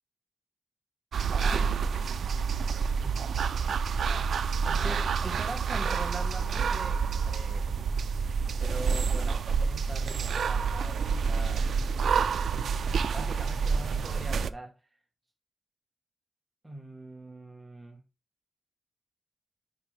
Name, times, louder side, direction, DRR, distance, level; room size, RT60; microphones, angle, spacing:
sound 1, 1.1-14.5, right 5 dB, 90° right, 0.4 m, -28 dB
voice 1, 1.4-1.8 3.0-3.4 4.6-7.7 8.6-11.7 13.1-14.7 16.6-18.0, right 1 dB, 10° right, 1.1 m, -42 dB
9.7 x 5.2 x 3.3 m
wide cardioid pair, 180°, 0 cm